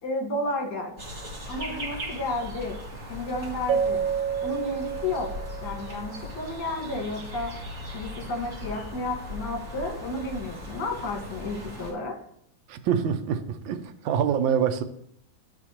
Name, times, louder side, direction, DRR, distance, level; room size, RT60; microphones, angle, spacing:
voice 1, 0.0-0.9 1.5-2.8 3.1-4.0 4.4-5.3 5.6-7.5 7.9-12.1, left 2 dB, 60° left, 1.9 m, -32 dB
sound 1, 1.0-11.9, left 1 dB, 35° right, 2.6 m, -38 dB
Keyboard (musical), 3.7-6.1, right 7 dB, 65° right, 0.9 m, -29 dB
voice 2, 12.7-14.8, right 8 dB, 80° right, 1.4 m, -25 dB
11.5 x 4.9 x 2.9 m
omnidirectional pair, 2.2 m